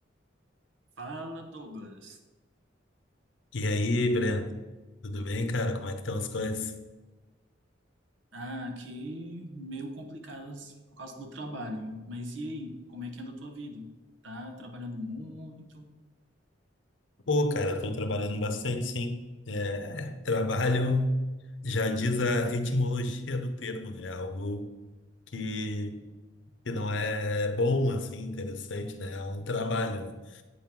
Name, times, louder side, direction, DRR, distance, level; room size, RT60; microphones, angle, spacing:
voice 1, 1.0-2.2 8.3-13.9 14.2-15.9, equal, 85° right, 1.0 m, -40 dB
voice 2, 3.5-4.6 5.0-6.7 17.3-19.2 19.5-21.2 21.6-24.7 25.3-26.0 26.7-30.4, left 2 dB, 75° left, 0.7 m, -29 dB
8.2 x 3.7 x 5.9 m
head